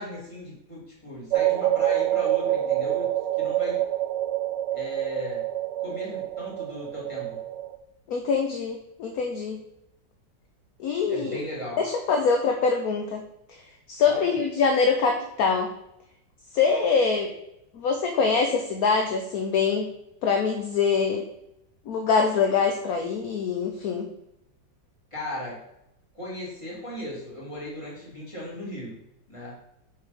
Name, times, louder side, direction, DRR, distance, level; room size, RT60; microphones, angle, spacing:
voice 1, 0.0-3.1 3.4-3.8 4.7-5.4 5.8-7.4 11.1-11.8 14.0-14.3 25.1-25.6 26.1-29.0 29.3-29.6, left 1 dB, 15° left, -6 dB, 2.8 m, -36 dB
sound 1, 1.3-7.8, right 13 dB, 75° right, 1.1 m, -26 dB
voice 2, 8.1-9.6 10.8-11.4 11.8-13.2 13.5-13.6 13.9-15.7 16.5-17.3 17.7-19.9 20.2-21.2 21.9-24.1, left 5 dB, 65° left, 4 dB, 1.1 m, -24 dB
6.7 x 4.7 x 5.2 m, 0.81 s
omnidirectional pair, 2.0 m